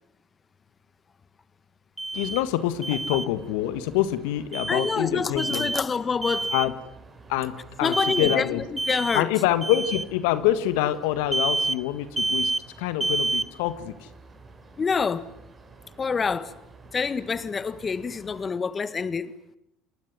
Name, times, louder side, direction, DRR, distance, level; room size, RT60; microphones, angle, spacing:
Alarm, 2.0-2.4 2.8-3.3 4.5-5.0 5.4-5.9 6.2-6.7 7.9-8.4 8.8-9.2 9.6-10.0 11.3-11.8 12.2-12.6 13.0-13.5, right 2 dB, 10° right, 1.3 m, -28 dB
voice 1, 2.1-5.7 6.5-6.7 7.3-7.5 7.8-8.6 9.1-12.5 12.8-13.9, left 13 dB, 75° left, 1.5 m, -25 dB
sound 1, 2.1-18.5, right 4 dB, 30° right, 6.1 m, -50 dB
voice 2, 4.7-6.5 7.8-9.3 14.8-15.3 16.0-16.5 16.9-19.3, left 5 dB, 30° left, 1.6 m, -27 dB
28.5 x 20.5 x 9.5 m
hypercardioid pair, 70°, 0 cm